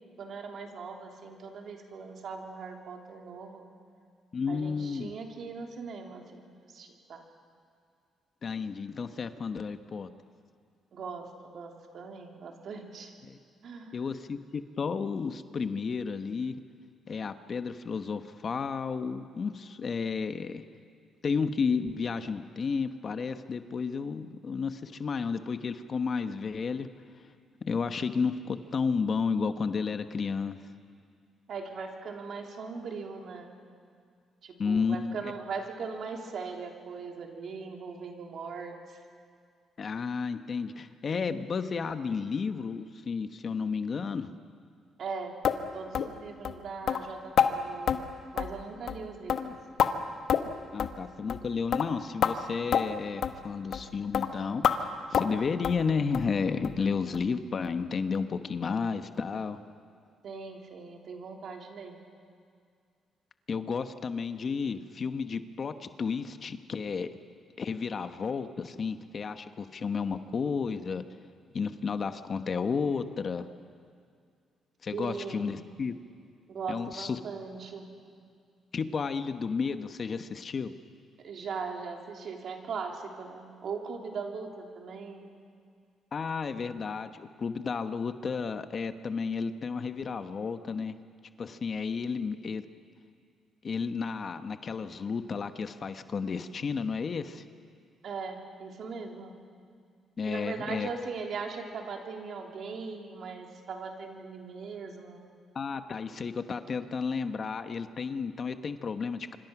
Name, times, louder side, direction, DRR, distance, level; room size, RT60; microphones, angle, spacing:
voice 1, 0.2-3.7 4.5-7.3 10.9-13.1 13.6-14.0 31.5-33.5 34.4-38.7 45.0-45.3 45.7-49.4 60.2-62.0 74.9-75.6 76.5-78.0 81.2-85.3 98.0-99.3 100.3-105.3, right 5 dB, 60° right, 2 dB, 3.3 m, -40 dB
voice 2, 4.3-5.1 8.4-10.1 13.2-13.4 13.9-16.5 17.1-20.6 21.2-26.9 27.6-30.6 34.6-35.3 39.8-44.3 50.7-59.6 63.5-67.1 67.6-71.0 71.5-73.5 74.8-75.9 76.7-77.2 78.7-80.7 86.1-90.9 91.4-92.6 93.6-97.4 100.2-100.9 105.5-109.4, left 5 dB, 45° left, 9 dB, 1.2 m, -32 dB
sound 1, 45.4-45.6 45.9-46.1 46.4-46.6 46.9-47.0 47.4-47.5 47.9-48.0 48.4-48.6 48.9-49.0 49.3-49.9 50.3-50.5 50.8-50.9 51.3-51.4 51.7-51.9 52.2-52.3 52.7-52.8 53.2-53.4 53.7-53.9 54.1-54.3 54.6-54.8 55.1-55.3 55.6-55.8 56.1-56.3 56.6-56.8 57.1-57.2 57.6-57.7, left 8 dB, 65° left, 1.3 m, -27 dB
26.0 x 25.0 x 6.1 m, 2.2 s
cardioid pair, 90°, 0 cm